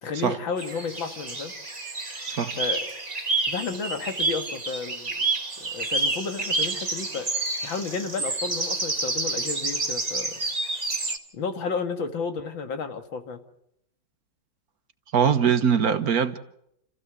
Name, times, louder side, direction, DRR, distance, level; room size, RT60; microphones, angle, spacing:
voice 1, 0.0-1.5 2.6-2.8 3.5-5.3 5.6-7.3 7.6-10.4 11.3-13.4, left 5 dB, 90° left, 2.6 m, -32 dB
sound 1, 0.6-11.2, right 3 dB, 20° right, 1.7 m, -29 dB
voice 2, 15.1-16.4, right 7 dB, 55° right, 1.6 m, -22 dB
29.5 x 15.0 x 8.1 m
omnidirectional pair, 2.0 m